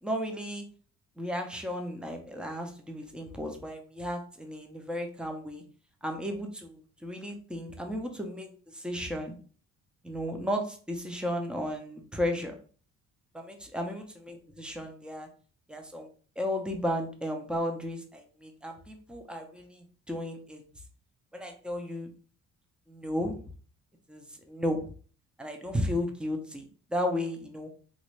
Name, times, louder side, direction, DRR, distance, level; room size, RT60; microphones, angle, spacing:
voice 1, 0.0-0.6 1.2-5.6 6.0-9.3 10.0-12.5 13.3-15.3 15.7-16.1 16.4-20.6 21.3-22.1 22.9-23.5 24.1-24.9 25.4-27.7, equal, 5° right, 3 dB, 0.7 m, -34 dB
3.0 x 2.6 x 3.1 m, 0.41 s
cardioid pair, 90°, 30 cm